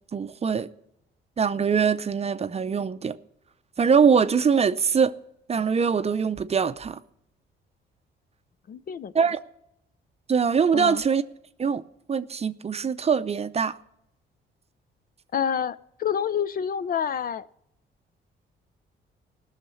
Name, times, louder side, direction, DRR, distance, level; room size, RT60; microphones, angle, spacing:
voice 1, 0.1-0.7 1.4-3.2 3.8-5.1 5.5-7.0 9.1-9.4 10.3-11.2 11.6-11.8 12.1-13.8, right 6 dB, 30° right, 0.6 m, -23 dB
voice 2, 8.7-9.3 10.7-11.0 15.3-17.5, left 8 dB, 45° left, 0.5 m, -28 dB
16.5 x 6.5 x 7.0 m
cardioid pair, 90°, 20 cm